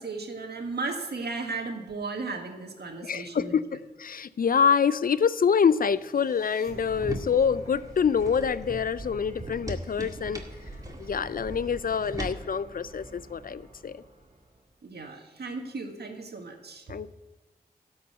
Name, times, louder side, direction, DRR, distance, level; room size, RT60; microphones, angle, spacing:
voice 1, 0.0-3.5 14.8-16.9, right 3 dB, 70° right, 4 dB, 1.7 m, -35 dB
voice 2, 3.0-10.4 11.0-14.0 16.9-17.1, left 6 dB, 60° left, 16 dB, 0.5 m, -26 dB
sound 1, 5.6-14.8, right 2 dB, 40° right, 2.1 m, -49 dB
sound 2, 6.8-12.3, right 1 dB, 20° right, 2.0 m, -40 dB
12.5 x 5.5 x 8.1 m, 1.2 s
cardioid pair, 45°, 17 cm